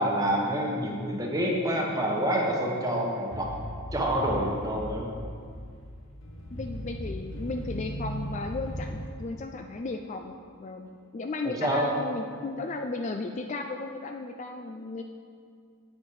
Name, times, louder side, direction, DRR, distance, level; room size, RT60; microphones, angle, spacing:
voice 1, 0.0-3.5 3.9-5.1 11.4-11.9, equal, 15° right, -1 dB, 1.1 m, -27 dB
sound 1, 3.3-9.1, equal, 60° left, 1.2 m, -37 dB
voice 2, 6.5-15.0, left 3 dB, 30° left, 5 dB, 0.3 m, -35 dB
8.6 x 7.3 x 4.7 m, 2.2 s
head